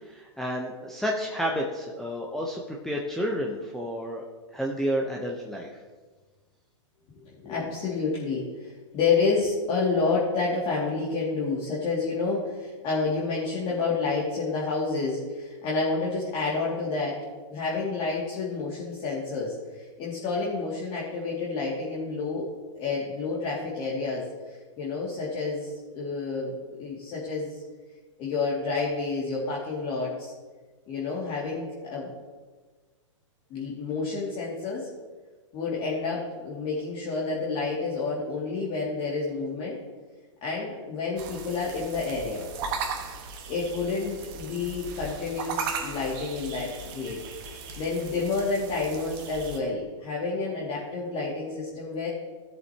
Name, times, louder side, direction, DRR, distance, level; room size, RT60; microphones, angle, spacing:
voice 1, 0.0-4.2 4.5-5.7, equal, ahead, -2 dB, 0.9 m, -30 dB
voice 2, 7.2-17.2 17.5-22.5 22.7-27.6 28.2-30.3 30.9-32.1 33.5-34.9 35.5-39.8 40.4-42.5 43.5-47.2 47.8-52.1, left 4 dB, 35° left, -6 dB, 2.5 m, -29 dB
sound 1, 41.2-49.6, right 5 dB, 40° right, 1.5 m, -37 dB
16.5 x 7.7 x 3.0 m, 1.3 s
hypercardioid pair, 125°, 17 cm